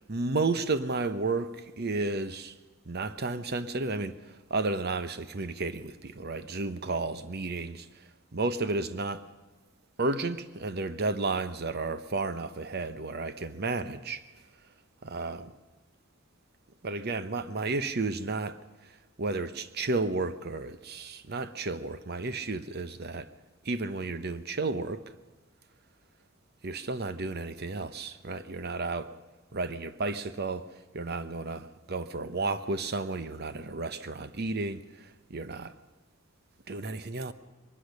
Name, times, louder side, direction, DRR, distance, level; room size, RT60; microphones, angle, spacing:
voice 1, 0.1-2.5 2.9-7.9 8.3-9.2 10.0-14.2 15.0-15.5 16.8-18.6 19.2-23.3 23.6-25.0 26.6-29.1 29.5-30.7 30.9-35.7 36.7-37.3, right 3 dB, 50° right, 0.9 m, -32 dB
22.5 x 20.0 x 6.5 m
head